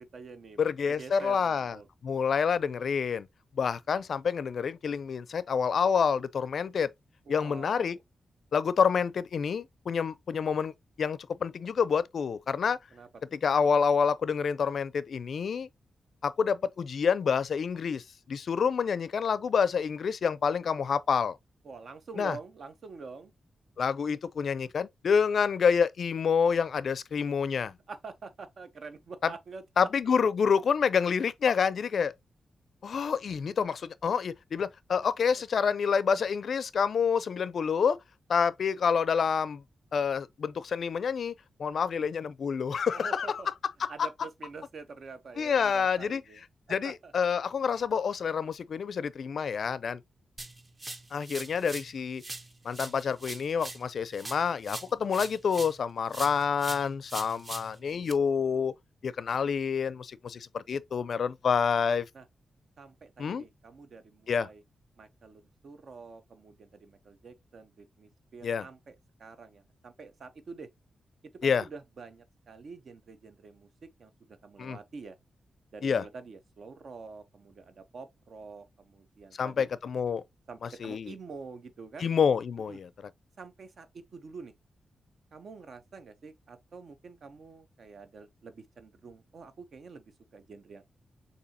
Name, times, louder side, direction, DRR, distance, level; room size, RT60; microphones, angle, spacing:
voice 1, 0.0-0.6 0.9-1.9 7.3-8.0 12.9-13.4 21.6-23.3 27.9-29.9 42.9-43.5 43.9-46.4 46.7-47.1 62.1-62.3 62.8-64.6 65.0-68.9 69.2-70.7 71.4-75.2 75.7-79.7 80.5-82.1 82.7-82.8 83.4-84.5 85.3-90.9, right 4 dB, 60° right, 0.8 m, -47 dB
voice 2, 0.6-1.8 2.0-3.3 3.6-6.9 7.3-8.0 8.5-10.7 11.0-12.8 13.3-15.7 16.2-21.4 22.2-22.4 23.8-27.7 29.2-29.3 29.8-32.1 32.8-38.0 38.3-39.6 39.9-41.3 41.6-43.4 43.8-44.1 45.4-46.2 46.7-50.0 51.1-52.2 52.6-58.7 59.0-62.1 63.2-63.4 64.3-64.5 68.4-68.6 71.4-71.6 74.6-74.8 75.8-76.0 79.4-80.2 80.6-81.1 82.0-82.9, left 6 dB, 60° left, 0.4 m, -28 dB
sound 1, 50.4-51.9 52.2-55.8 56.1-58.1, right 2 dB, 25° right, 0.8 m, -42 dB
6.7 x 2.7 x 2.7 m
wide cardioid pair, 125°, 0 cm